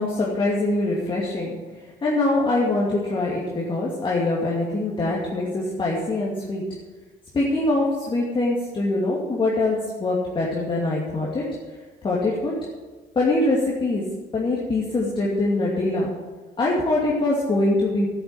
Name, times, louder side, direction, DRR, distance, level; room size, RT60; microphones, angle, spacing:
voice 1, 0.0-1.5 2.0-6.6 7.3-11.4 12.0-12.5 13.2-14.0 14.3-16.1 16.6-18.1, left 2 dB, 30° left, -5 dB, 2.6 m, -23 dB
11.0 x 8.5 x 8.1 m, 1.3 s
cardioid pair, 110°, 17 cm